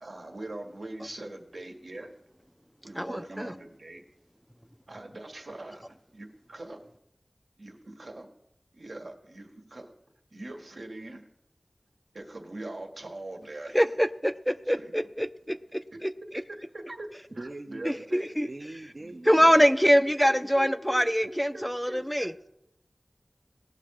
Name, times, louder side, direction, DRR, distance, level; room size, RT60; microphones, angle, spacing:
voice 1, 0.0-2.1 2.8-4.0 4.9-6.8 7.6-8.3 8.7-9.9 10.3-11.2 12.1-13.8 14.7-14.9 16.5-18.3 19.0-19.1 19.4-19.6 20.2-22.3, right 2 dB, 75° right, 2 dB, 1.9 m, -42 dB
voice 2, 3.0-3.5 13.7-16.1 17.8-18.5 19.2-22.3, equal, ahead, 11 dB, 0.5 m, -24 dB
voice 3, 17.3-18.1 18.4-19.6, right 2 dB, 50° right, 1 dB, 0.8 m, -42 dB
18.5 x 6.4 x 4.9 m, 0.80 s
wide cardioid pair, 50°, 0 cm